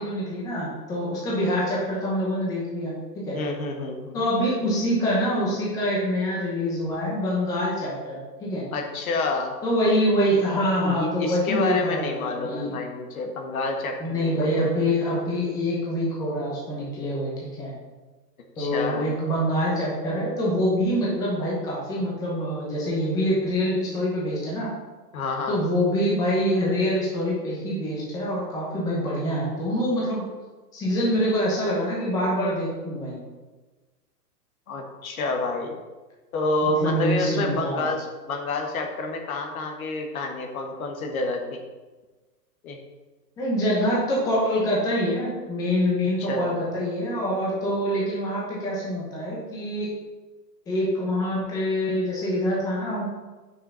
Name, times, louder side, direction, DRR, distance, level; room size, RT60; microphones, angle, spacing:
voice 1, 0.0-3.3 4.1-8.6 9.6-12.7 14.0-17.3 17.6-17.7 18.6-24.7 25.5-30.2 30.7-33.2 36.6-37.9 43.4-49.9 50.7-53.0, equal, 5° left, -5 dB, 0.9 m, -25 dB
voice 2, 3.3-4.2 8.7-9.5 10.8-14.4 18.6-19.1 25.1-25.6 34.7-35.8 36.3-41.6 42.6-42.8 46.2-46.5, left 2 dB, 55° left, 3 dB, 1.5 m, -28 dB
6.4 x 5.8 x 5.5 m, 1.3 s
hypercardioid pair, 165°, 49 cm